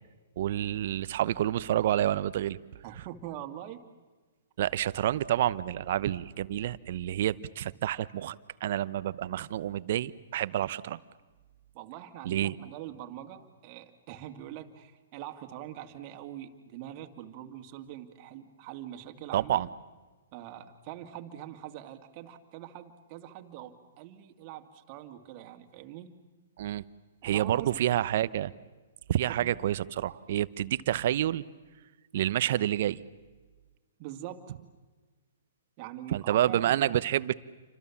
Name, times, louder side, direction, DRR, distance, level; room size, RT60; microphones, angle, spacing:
voice 1, 0.4-2.6 4.6-8.4 8.6-11.0 12.3-12.6 19.3-19.7 26.6-26.8 27.2-28.5 29.1-31.4 32.1-33.0 36.1-37.3, right 12 dB, 55° right, 17 dB, 0.9 m, -28 dB
voice 2, 2.8-3.8 11.7-19.6 20.3-26.1 27.2-27.8 29.3-29.7 34.0-34.6 35.8-37.0, right 12 dB, 40° right, 5 dB, 2.2 m, -43 dB
29.0 x 25.5 x 7.3 m, 1.3 s
hypercardioid pair, 130°, 0 cm